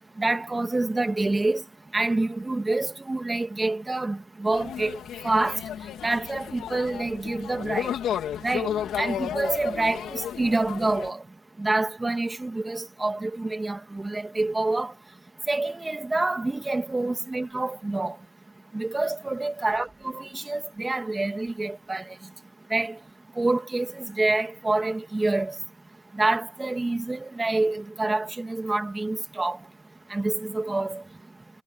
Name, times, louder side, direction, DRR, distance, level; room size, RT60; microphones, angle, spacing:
voice 1, 0.2-1.6 1.9-5.0 5.2-5.6 6.0-8.0 8.4-11.2 11.6-14.9 15.5-18.2 18.7-22.2 22.7-22.9 23.4-25.6 26.2-29.6 30.1-31.0, right 2 dB, 20° right, 2.1 m, -27 dB
sound 1, 4.5-11.1, left 10 dB, 75° left, 2.0 m, -33 dB
cardioid pair, 90°, 0 cm